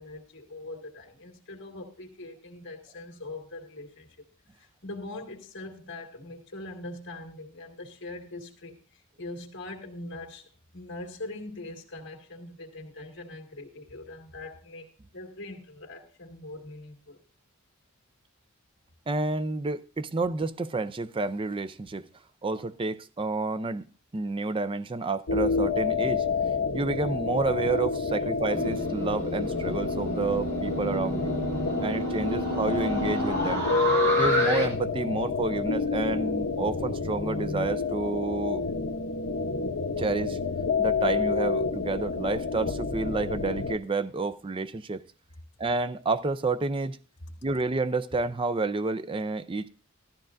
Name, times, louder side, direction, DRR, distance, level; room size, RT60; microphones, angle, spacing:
voice 1, 0.0-4.1 4.6-14.9 15.1-17.2, left 2 dB, 60° left, 2.0 m, -42 dB
voice 2, 19.1-22.1 22.4-23.9 24.1-26.2 26.7-31.4 31.8-33.6 34.1-38.6 40.0-40.4 40.8-45.0 45.6-47.0 47.4-49.7, right 3 dB, 25° right, 0.4 m, -29 dB
sound 1, 25.3-43.8, left 4 dB, 80° left, 0.9 m, -29 dB
sound 2, 28.5-34.7, right 1 dB, 50° right, 2.5 m, -31 dB
15.0 x 13.0 x 2.6 m
head